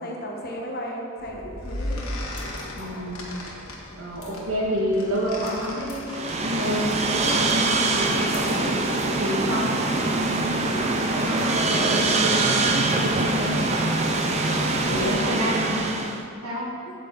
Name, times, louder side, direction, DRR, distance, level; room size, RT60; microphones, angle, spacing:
voice 1, 0.0-2.1 14.9-15.7, equal, 45° left, -1 dB, 1.2 m, -34 dB
sound 1, 1.2-16.0, left 1 dB, 85° left, 1.3 m, -38 dB
voice 2, 2.7-3.3 4.0-8.7 9.2-10.6 11.0-13.6 14.9-16.0 16.4-16.7, equal, 80° right, -4 dB, 2.0 m, -29 dB
sound 2, 6.1-16.2, right 3 dB, 30° right, 0.5 m, -24 dB
sound 3, 6.6-15.2, left 1 dB, 25° left, 2.3 m, -39 dB
8.7 x 7.6 x 4.0 m, 2.5 s
head